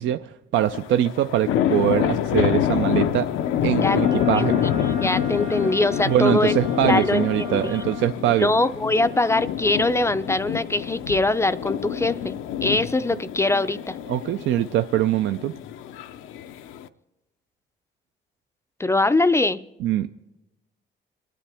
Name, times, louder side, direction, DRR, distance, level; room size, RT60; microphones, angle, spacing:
voice 1, 0.0-3.3 3.6-4.6 6.0-8.5 14.1-15.5 19.8-20.1, right 11 dB, 70° right, 10 dB, 0.4 m, -22 dB
sound 1, 0.5-16.9, left 10 dB, 85° left, 0.5 m, -27 dB
voice 2, 3.8-4.7 5.0-6.5 6.9-7.2 7.5-7.8 8.4-12.4 12.6-14.0 18.8-19.6, left 2 dB, 15° left, 13 dB, 0.4 m, -22 dB
Wind instrument woodwind instrument, 3.8-8.2, left 2 dB, 40° right, 0.9 m, -37 dB
28.5 x 10.0 x 3.4 m, 1.0 s
cardioid pair, 90°, 20 cm